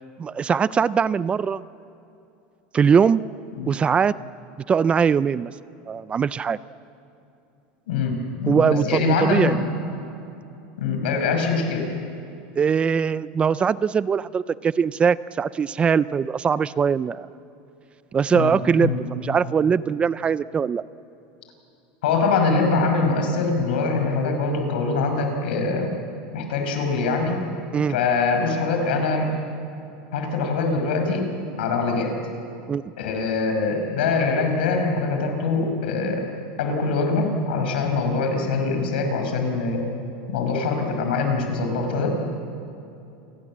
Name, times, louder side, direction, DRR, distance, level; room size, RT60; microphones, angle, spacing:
voice 1, 0.2-1.6 2.7-3.2 3.7-4.1 4.7-5.5 5.9-6.6 8.5-9.5 12.6-17.3 18.1-20.8 27.7-28.0 32.7-32.8, right 6 dB, 20° right, 17 dB, 0.4 m, -21 dB
voice 2, 7.9-9.6 10.8-11.9 18.3-19.0 22.0-25.9 26.3-27.4 27.9-29.3 30.1-31.3 31.6-32.1 33.0-36.2 36.6-39.8 40.3-42.2, left 4 dB, 90° left, 4 dB, 5.4 m, -23 dB
28.5 x 20.0 x 7.4 m, 2.8 s
supercardioid pair, 135°, 5 cm